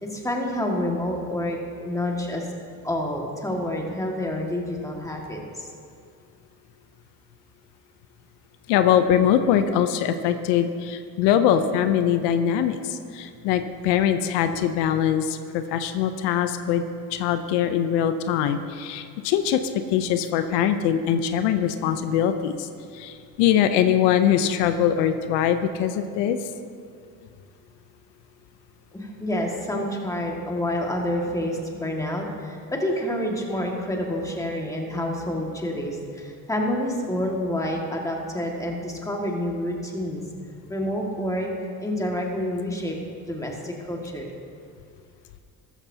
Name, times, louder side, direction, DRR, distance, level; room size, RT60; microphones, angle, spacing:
voice 1, 0.0-2.5 2.8-5.7 28.9-40.2 40.7-41.5 41.8-43.0 43.3-44.3, left 1 dB, 10° left, 0 dB, 1.9 m, -28 dB
voice 2, 8.7-16.8 17.1-19.6 19.9-22.7 22.9-26.4, left 9 dB, 85° left, 9 dB, 0.7 m, -22 dB
13.5 x 13.0 x 2.8 m, 2.3 s
supercardioid pair, 95°, 41 cm